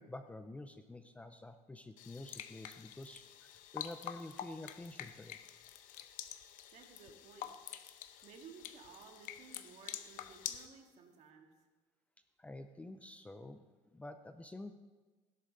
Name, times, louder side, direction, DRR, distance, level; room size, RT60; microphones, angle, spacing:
voice 1, 0.0-5.4 12.4-13.6 13.9-14.7, left 2 dB, 10° left, 9 dB, 0.5 m, -49 dB
sound 1, 2.0-10.7, left 11 dB, 75° left, 0.8 m, -47 dB
voice 2, 6.7-7.5 8.2-11.5, right 5 dB, 55° right, 3 dB, 1.9 m, -56 dB
16.5 x 11.0 x 3.9 m, 1.3 s
cardioid pair, 145°, 14 cm